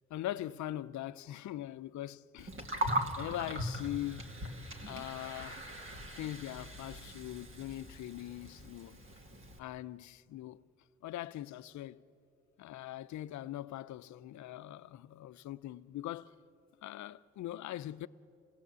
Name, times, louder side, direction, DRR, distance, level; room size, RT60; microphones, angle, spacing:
voice 1, 0.1-2.5 3.2-4.3 4.9-5.6 6.2-9.0 9.6-10.6 11.0-12.0 12.6-16.3 16.8-18.1, left 14 dB, 70° left, 0.6 m, -41 dB
Gurgling, 2.4-9.6, right 1 dB, 40° right, 2.6 m, -40 dB
27.5 x 16.5 x 8.2 m
supercardioid pair, 65°, 30 cm